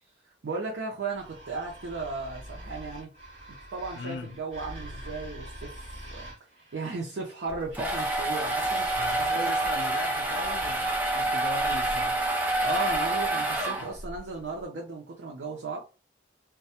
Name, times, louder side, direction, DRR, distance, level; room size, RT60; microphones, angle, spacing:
voice 1, 0.4-3.1 3.7-6.2 6.7-8.9 9.3-9.5 12.6-15.8, right 4 dB, 85° right, 0.5 m, -35 dB
sound 1, 1.1-6.9 8.1-10.7, equal, 35° right, 1.0 m, -45 dB
voice 2, 3.9-4.3 9.0-12.1 13.8-13.9, left 4 dB, 90° left, 0.3 m, -39 dB
sound 2, 7.5-14.2, right 2 dB, 10° right, 0.4 m, -27 dB
2.2 x 2.0 x 2.7 m
head